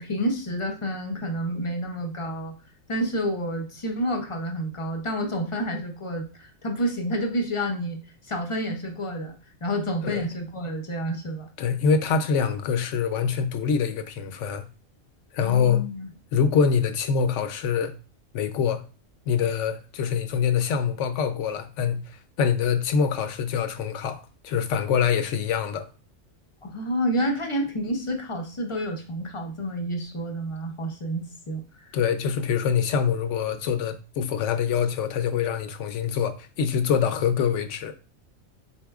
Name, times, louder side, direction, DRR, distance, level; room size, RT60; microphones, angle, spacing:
voice 1, 0.0-2.5 2.9-8.0 8.2-11.5 15.4-16.1 26.6-31.9, equal, 40° left, 0.4 m, -29 dB
voice 2, 11.6-14.7 15.3-15.8 16.3-17.9 18.3-18.8 19.3-22.0 22.4-25.9 31.9-37.9, left 6 dB, 75° left, 0.9 m, -24 dB
4.2 x 4.2 x 2.3 m
omnidirectional pair, 1.3 m